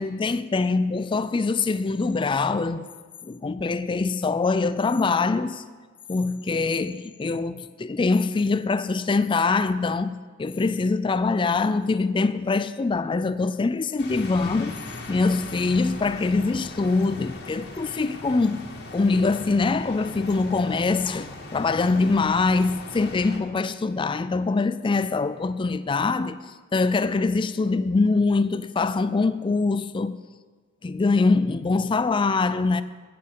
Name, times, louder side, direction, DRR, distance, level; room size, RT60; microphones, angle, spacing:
voice 1, 0.0-2.9 3.2-5.6 6.1-14.8 15.1-18.7 18.9-26.4 26.7-30.2 30.8-32.8, left 3 dB, 25° left, 0.3 m, -23 dB
sound 1, 14.0-23.4, left 2 dB, 55° left, 1.8 m, -39 dB
9.4 x 8.5 x 8.2 m
head